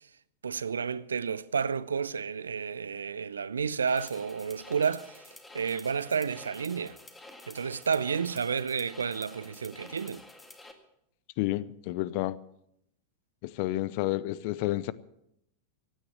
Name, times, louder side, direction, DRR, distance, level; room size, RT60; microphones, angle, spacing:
voice 1, 0.4-5.2 5.5-7.0 7.5-10.2, right 6 dB, 70° right, 0.5 m, -31 dB
sound 1, 3.9-10.7, left 2 dB, 10° left, 1.9 m, -50 dB
voice 2, 11.4-12.4 13.4-14.9, left 17 dB, 45° left, 0.6 m, -30 dB
15.5 x 9.8 x 7.9 m
figure-of-eight pair, 90°, 0 cm